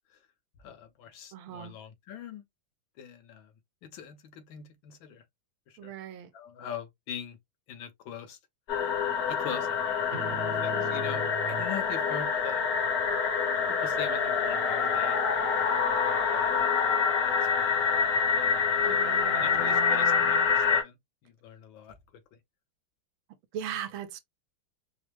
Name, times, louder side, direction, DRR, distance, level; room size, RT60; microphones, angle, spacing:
voice 1, 0.6-2.4 3.0-3.5 3.8-5.2 5.7-5.9 6.3-7.4 7.7-8.4 9.3-10.2 10.6-12.7 13.7-15.2 15.6-16.6 17.0-19.1 19.3-21.0 21.2-21.9, left 8 dB, 70° left, 1.5 m, -42 dB
voice 2, 1.3-1.7 5.8-6.3 10.7-11.1 18.8-20.5 23.5-24.2, right 9 dB, 80° right, 1.4 m, -39 dB
sound 1, 8.7-20.8, left 6 dB, 55° left, 1.3 m, -26 dB
sound 2, 10.1-18.0, right 3 dB, 50° right, 1.1 m, -41 dB
4.8 x 2.0 x 3.1 m
omnidirectional pair, 2.3 m